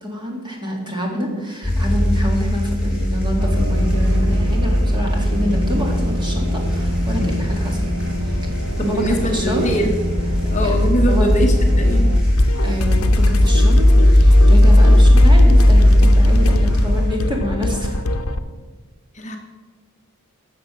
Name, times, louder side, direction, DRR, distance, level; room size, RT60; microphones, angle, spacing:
voice 1, 0.0-7.8 8.2-8.3 8.8-9.7 10.6-10.8 11.1-11.3 12.6-18.0, equal, 20° right, 0 dB, 2.2 m, -27 dB
sound 1, 1.6-17.1, left 1 dB, 5° right, 3.2 m, -16 dB
sound 2, 3.4-12.2, equal, 65° right, 1.1 m, -26 dB
voice 2, 8.8-9.9 10.5-12.1 19.1-19.4, right 1 dB, 30° left, 3 dB, 1.0 m, -22 dB
sound 3, 12.3-18.4, left 2 dB, 70° left, 0.7 m, -22 dB
13.0 x 6.8 x 6.3 m, 1.4 s
head